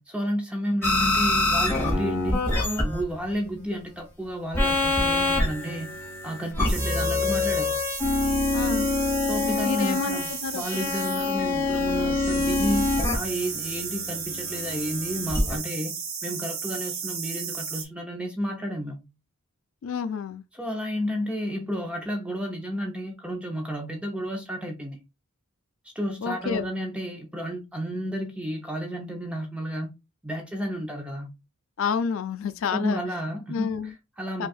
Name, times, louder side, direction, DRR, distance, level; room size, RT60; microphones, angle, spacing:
voice 1, 0.0-2.5 2.8-5.9 6.2-7.8 9.2-15.9 16.2-19.1 20.5-25.0 25.9-29.9 30.2-31.3 32.7-34.5, equal, 5° right, 0.6 m, -31 dB
sound 1, 0.8-3.3 4.5-15.6, left 2 dB, 10° left, 1.0 m, -26 dB
sound 2, 6.7-17.8, right 6 dB, 65° right, 1.2 m, -34 dB
voice 2, 8.5-8.9 9.4-10.9 19.8-20.4 26.2-26.7 31.8-33.0 33.5-33.9 34.4-34.5, left 5 dB, 65° left, 0.4 m, -29 dB
5.3 x 2.4 x 2.3 m
head